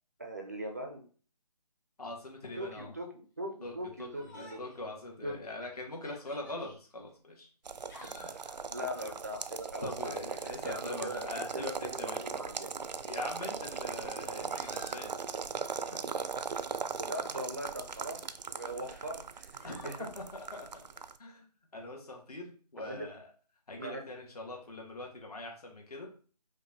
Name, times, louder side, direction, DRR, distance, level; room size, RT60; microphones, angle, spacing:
voice 1, 0.2-1.0 2.6-4.6 5.2-5.4 8.0-8.1 8.7-10.1 10.4-11.3 11.5-12.8 17.0-20.1 22.8-23.1 23.8-24.1, right 1 dB, 25° right, 2 dB, 0.4 m, -41 dB
voice 2, 2.0-2.9 3.6-3.7 4.0-4.1 4.3-7.5 8.2-8.6 9.8-12.4 13.0-15.1 15.5-16.2 19.6-20.9 21.2-21.4 21.7-23.3 23.7-26.1, left 2 dB, 65° left, 1 dB, 1.6 m, -43 dB
Yell, 4.1-4.8 5.3-5.4 5.9-6.8 7.6-8.5 10.2-10.7 11.8-11.9 12.8-13.6 14.2-15.1 17.8-18.4 19.6-20.1, left 2 dB, 30° left, 0.9 m, -54 dB
sound 1, 7.6-21.2, right 5 dB, 85° right, 0.4 m, -39 dB
5.2 x 2.5 x 2.8 m, 0.41 s
figure-of-eight pair, 155°, 21 cm